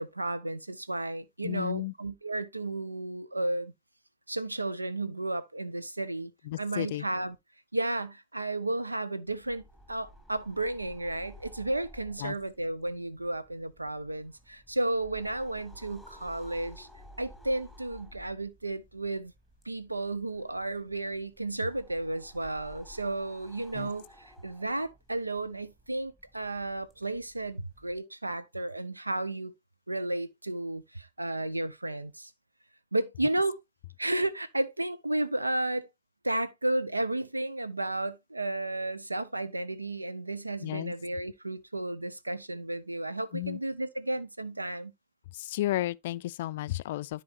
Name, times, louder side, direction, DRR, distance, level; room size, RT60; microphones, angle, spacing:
voice 1, 0.0-3.7 4.3-6.3 6.6-7.4 7.7-16.9 17.2-19.3 19.6-29.5 29.9-32.3 32.9-33.6 34.0-35.9 36.2-44.9, right 2 dB, 85° right, 0.6 m, -33 dB
voice 2, 1.4-1.9 6.4-7.1 12.2-12.3 23.7-23.9 40.6-40.9 43.3-43.6 45.3-47.2, left 15 dB, 55° left, 0.3 m, -33 dB
sound 1, 9.3-28.0, equal, 10° right, 2.5 m, -55 dB
13.0 x 4.7 x 2.5 m
figure-of-eight pair, 90°, 0 cm